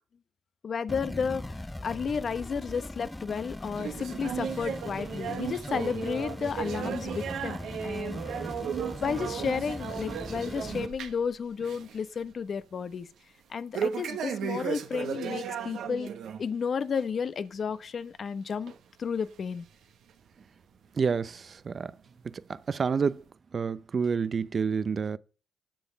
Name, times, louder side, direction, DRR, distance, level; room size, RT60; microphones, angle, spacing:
voice 1, 0.6-8.4 8.8-13.1 13.5-16.1 16.4-18.7 19.0-19.7, left 6 dB, 55° left, 0.9 m, -32 dB
sound 1, 0.9-10.9, left 1 dB, 15° left, 0.5 m, -40 dB
sound 2, 3.8-11.3 11.6-12.0 12.3-12.4 13.7-16.4 16.8-17.0 17.7-17.8 18.7-18.8 19.5-19.6, right 7 dB, 75° right, 1.2 m, -35 dB
voice 2, 21.0-21.9 22.2-23.2 23.5-25.2, right 5 dB, 50° right, 0.6 m, -29 dB
10.5 x 7.1 x 6.8 m
hypercardioid pair, 50°, 0 cm